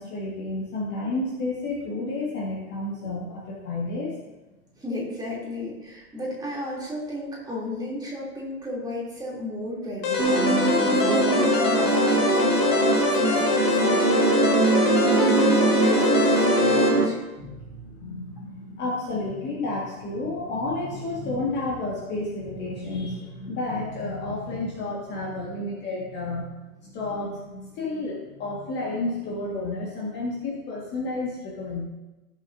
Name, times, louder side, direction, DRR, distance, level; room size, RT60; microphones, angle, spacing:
voice 1, 0.0-4.1 16.6-17.0 17.4-26.5 26.8-31.8, left 2 dB, 25° left, -4 dB, 1.8 m, -31 dB
voice 2, 4.8-14.3 15.1-17.2, equal, 10° right, -5 dB, 3.0 m, -33 dB
sound 1, 10.0-16.9, left 4 dB, 40° left, 2.0 m, -25 dB
sound 2, 10.2-17.1, right 2 dB, 85° right, 2.1 m, -21 dB
17.5 x 6.9 x 2.7 m, 1.1 s
figure-of-eight pair, 105°, 45 cm